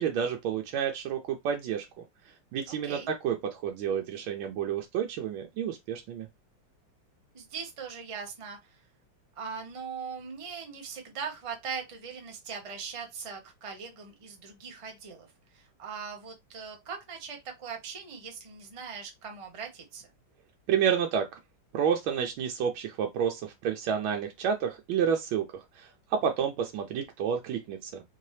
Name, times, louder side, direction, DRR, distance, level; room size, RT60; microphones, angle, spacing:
voice 1, 0.0-1.8 2.5-6.3 20.7-21.4 21.7-28.0, right 8 dB, 90° right, 1.4 m, -30 dB
voice 2, 2.7-3.1 7.3-8.6 9.4-15.3 15.5-20.0, right 6 dB, 30° right, 0.5 m, -40 dB
4.3 x 2.7 x 3.2 m
omnidirectional pair, 2.1 m